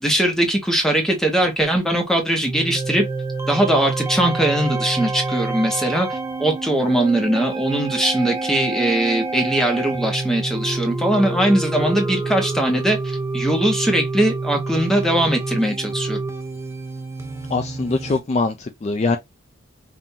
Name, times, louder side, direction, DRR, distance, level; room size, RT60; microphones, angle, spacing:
voice 1, 0.0-3.0 3.5-16.2, right 1 dB, ahead, 1.0 m, -20 dB
sound 1, 2.4-18.2, right 3 dB, 15° right, 0.6 m, -27 dB
voice 2, 17.5-19.2, left 3 dB, 35° left, 0.3 m, -22 dB
5.4 x 2.6 x 2.8 m
head